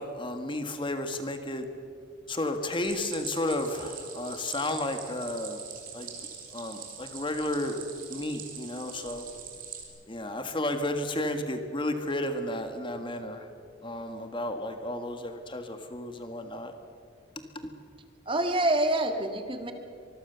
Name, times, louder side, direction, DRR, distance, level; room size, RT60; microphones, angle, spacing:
voice 1, 0.0-1.7 2.3-5.6 5.9-6.1 6.5-7.8 8.1-9.3 10.1-13.5 13.8-16.7 17.6-17.7, left 1 dB, 25° left, 7 dB, 1.6 m, -32 dB
Stream, 2.8-9.8, right 7 dB, 45° right, 4.1 m, -43 dB
voice 2, 18.3-19.7, right 1 dB, 25° right, 6 dB, 1.8 m, -26 dB
25.0 x 21.5 x 6.9 m, 2.5 s
head